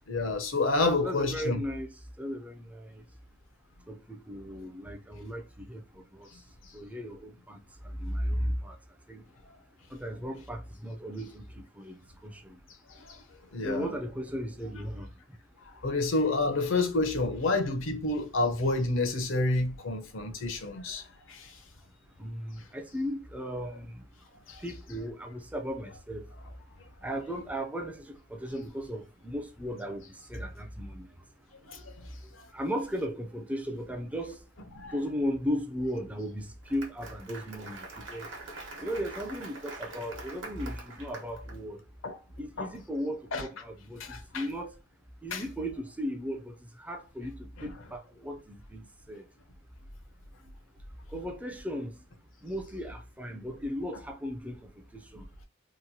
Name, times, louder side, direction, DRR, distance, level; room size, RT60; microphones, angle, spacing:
voice 1, 0.1-1.6 13.0-13.2 13.5-13.9 15.7-21.5 24.5-24.6 31.7-31.8 32.4-32.5 34.7-34.9 42.0-42.2 42.6-42.7 43.3-43.4 44.0-44.4 45.3-45.4 47.6-47.7, left 2 dB, 75° left, 0.6 m, -29 dB
voice 2, 0.8-1.9 2.2-3.0 3.9-6.3 6.7-7.6 7.8-8.8 9.1-9.2 9.9-12.0 12.2-12.5 13.6-15.1 22.2-24.0 24.6-26.2 27.0-31.1 32.5-34.4 34.9-38.3 38.8-41.8 42.4-44.7 45.2-49.2 51.1-51.9 52.4-55.2, equal, 5° right, 0.3 m, -36 dB
Applause, 36.4-41.6, right 2 dB, 65° right, 0.9 m, -44 dB
2.9 x 2.2 x 2.7 m
head